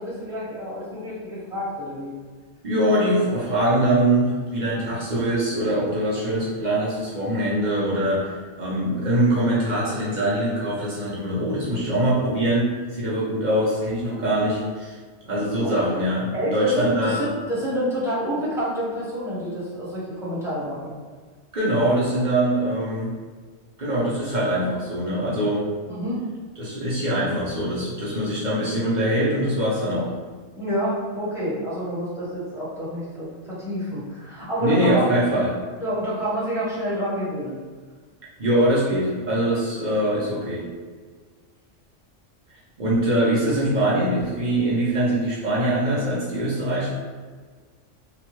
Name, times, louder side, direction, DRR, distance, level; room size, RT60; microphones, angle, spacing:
voice 1, 0.0-2.1 15.4-15.7 16.3-20.9 25.9-26.2 30.6-35.1 35.8-37.6, equal, ahead, -10 dB, 1.0 m, -28 dB
voice 2, 2.6-14.9 15.3-17.2 21.5-23.1 23.8-25.6 26.6-30.1 34.6-35.5 38.4-40.7 42.8-46.9, right 1 dB, 50° right, -7 dB, 0.6 m, -23 dB
2.8 x 2.2 x 3.0 m, 1.5 s
omnidirectional pair, 1.3 m